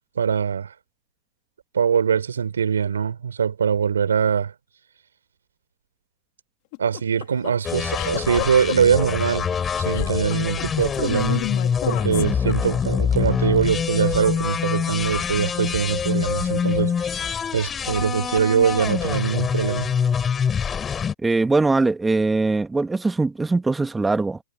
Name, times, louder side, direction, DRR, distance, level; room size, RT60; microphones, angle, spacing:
voice 1, 0.2-0.7 1.7-4.5 6.8-9.5 9.8-11.4 11.9-16.9 17.5-19.9, right 7 dB, 85° right, 4.1 m, -22 dB
sound 1, 6.7-13.0, left 29 dB, 45° left, 3.1 m, -31 dB
sound 2, 7.6-21.1, left 7 dB, 15° left, 5.4 m, -25 dB
voice 2, 21.2-24.4, right 3 dB, 10° right, 1.6 m, -21 dB
hypercardioid pair, 130°, 0 cm